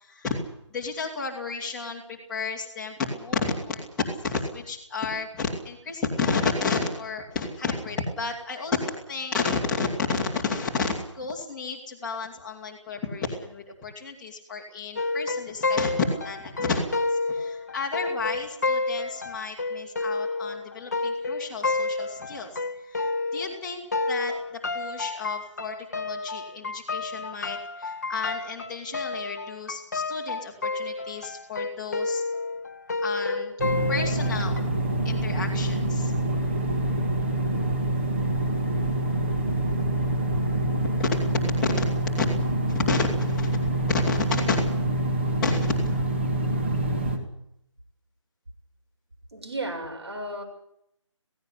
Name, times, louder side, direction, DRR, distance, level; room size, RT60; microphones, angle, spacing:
voice 1, 0.1-0.4 0.7-16.8 17.3-22.5 22.9-23.8 24.1-24.3 24.7-32.2 33.0-33.5 33.9-34.6 35.0-36.1 41.0-41.9 42.2-42.3 42.6-43.6 43.9-44.6 45.4-45.9, left 4 dB, 5° left, -5 dB, 2.1 m, -31 dB
sound 1, 15.0-23.6 23.9-34.6, left 3 dB, 35° left, 1.2 m, -30 dB
sound 2, 33.6-47.2, right 1 dB, 25° right, 2.3 m, -26 dB
voice 2, 49.3-50.4, right 1 dB, 55° right, 2 dB, 7.1 m, -33 dB
17.0 x 17.0 x 9.8 m, 0.76 s
figure-of-eight pair, 170°, 16 cm